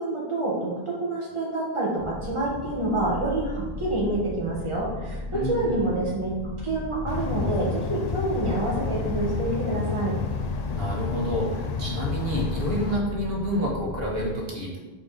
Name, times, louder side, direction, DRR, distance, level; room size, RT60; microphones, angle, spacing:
voice 1, 0.0-6.3 6.6-10.1, right 2 dB, 30° right, -5 dB, 1.8 m, -27 dB
sound 1, 2.0-14.3, left 1 dB, 75° left, 1.7 m, -36 dB
voice 2, 5.3-5.9 10.7-14.8, equal, 65° right, -3 dB, 1.8 m, -29 dB
sound 2, 7.1-13.0, left 5 dB, 50° left, 0.5 m, -30 dB
5.7 x 4.6 x 4.9 m, 1.2 s
omnidirectional pair, 1.1 m